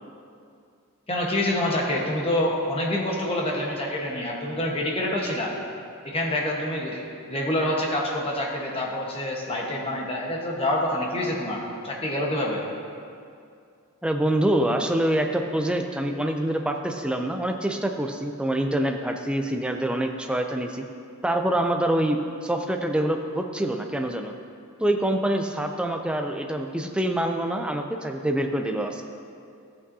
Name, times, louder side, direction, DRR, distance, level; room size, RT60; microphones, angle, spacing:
voice 1, 1.1-5.5 6.0-12.6, left 1 dB, 25° left, -2 dB, 1.2 m, -27 dB
voice 2, 14.0-20.8 21.2-24.3 24.8-29.0, right 1 dB, 5° right, 4 dB, 0.4 m, -25 dB
13.5 x 8.7 x 2.7 m, 2.4 s
head